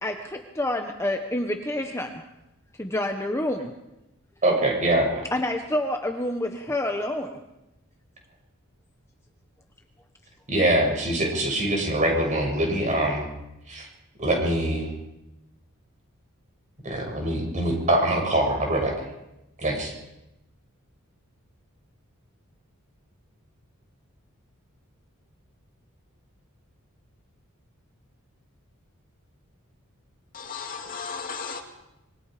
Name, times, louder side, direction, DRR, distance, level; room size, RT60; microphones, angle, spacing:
voice 1, 0.0-2.2 2.8-3.7 5.3-7.4, left 1 dB, 15° left, 3 dB, 1.2 m, -28 dB
voice 2, 4.4-5.3 10.5-13.3 13.7-13.9 14.2-14.9 16.8-18.9 19.6-19.9, right 1 dB, 35° right, 1 dB, 7.1 m, -23 dB
voice 3, 30.3-31.6, left 5 dB, 40° left, 3 dB, 2.4 m, -35 dB
26.0 x 23.5 x 5.2 m, 0.93 s
head